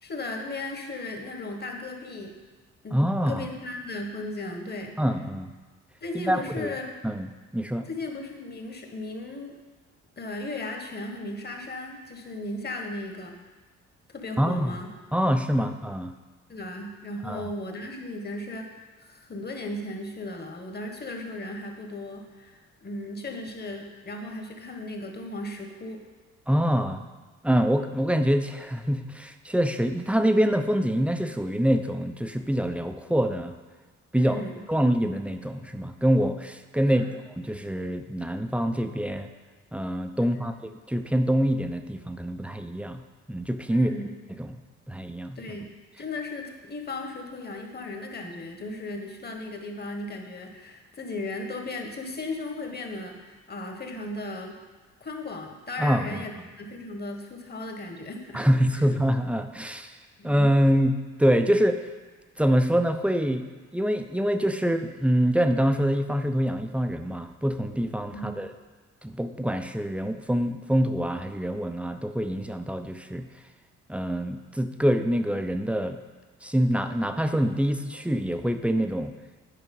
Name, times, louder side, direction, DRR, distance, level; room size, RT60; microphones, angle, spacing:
voice 1, 0.0-2.3 2.8-3.0 3.3-5.0 6.0-7.0 7.9-9.6 10.2-13.4 14.1-14.9 15.5-15.7 16.5-26.0 34.1-34.6 36.8-37.2 40.2-40.5 43.7-44.1 45.3-45.7 46.0-54.6 55.0-58.5 58.8-58.9 60.2-60.3 68.1-68.4, left 2 dB, 35° left, 3 dB, 1.4 m, -36 dB
voice 2, 2.9-3.5 5.0-5.5 6.1-6.7 7.0-7.9 14.4-14.7 15.1-16.1 17.2-17.5 26.5-27.0 27.4-33.5 34.1-34.4 34.7-39.3 39.7-40.5 40.9-43.0 43.3-43.9 44.4-44.6 44.9-45.4 55.8-56.3 58.3-60.0 60.2-61.8 62.4-63.5 63.7-68.5 69.0-73.3 73.9-76.0 76.4-79.1, equal, 5° right, 7 dB, 0.5 m, -25 dB
9.8 x 4.9 x 5.4 m, 1.3 s
cardioid pair, 90°, 30 cm